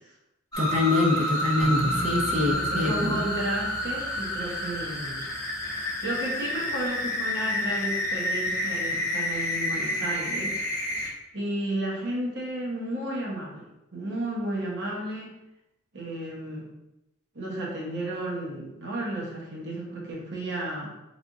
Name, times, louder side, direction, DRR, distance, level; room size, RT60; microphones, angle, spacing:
sound 1, 0.5-11.1, left 1 dB, 15° left, 0.8 m, -29 dB
voice 1, 0.6-3.2, left 2 dB, 35° right, 0 dB, 0.6 m, -25 dB
sound 2, 1.6-6.2, right 1 dB, 60° left, 0.8 m, -39 dB
voice 2, 2.5-5.2 6.0-10.6 11.3-15.4 15.9-16.7 17.3-20.9, right 1 dB, 55° right, -3 dB, 1.0 m, -32 dB
3.5 x 3.4 x 2.6 m, 0.91 s
head